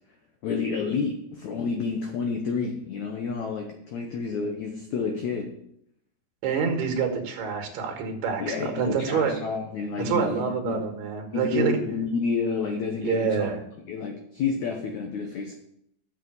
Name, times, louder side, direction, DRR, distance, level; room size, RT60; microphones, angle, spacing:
voice 1, 0.4-5.5 8.4-10.8 11.3-13.6 13.9-15.5, left 5 dB, 90° left, 3 dB, 1.6 m, -29 dB
voice 2, 6.4-9.3 10.0-11.7 13.0-13.6, right 6 dB, 75° right, 3 dB, 3.4 m, -27 dB
6.9 x 6.7 x 7.8 m, 0.74 s
omnidirectional pair, 4.6 m